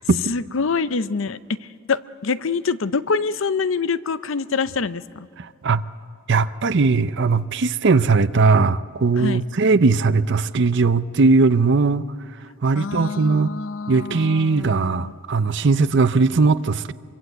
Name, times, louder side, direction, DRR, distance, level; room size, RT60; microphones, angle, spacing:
voice 1, 0.1-5.3 9.2-9.4 12.7-15.1, left 5 dB, 65° left, 0.6 m, -25 dB
voice 2, 5.4-5.8 6.3-12.0 12.6-13.5 13.9-16.9, right 4 dB, 60° right, 0.6 m, -19 dB
24.5 x 24.0 x 8.0 m
head